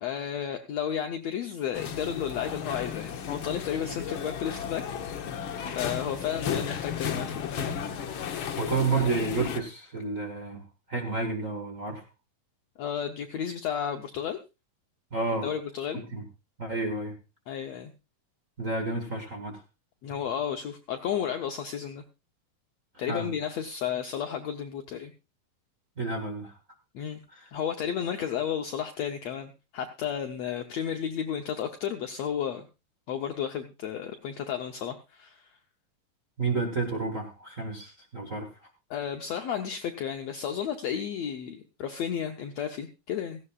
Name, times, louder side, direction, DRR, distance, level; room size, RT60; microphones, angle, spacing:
voice 1, 0.0-4.8 5.7-7.8 12.8-14.4 15.4-16.0 17.5-17.9 20.0-22.0 23.0-25.1 26.9-27.2 27.5-32.7 33.1-35.4 38.9-43.4, left 8 dB, 70° left, 4 dB, 1.6 m, -32 dB
sound 1, 1.7-9.6, left 7 dB, 90° left, 1.1 m, -34 dB
voice 2, 8.5-10.6 10.9-12.0 15.1-15.5 16.1-16.2 16.6-17.2 18.6-19.6 23.1-23.3 26.0-26.5 27.3-27.5 36.4-38.5, right 3 dB, 30° right, 2 dB, 1.5 m, -30 dB
16.5 x 15.5 x 2.4 m, 0.27 s
omnidirectional pair, 4.0 m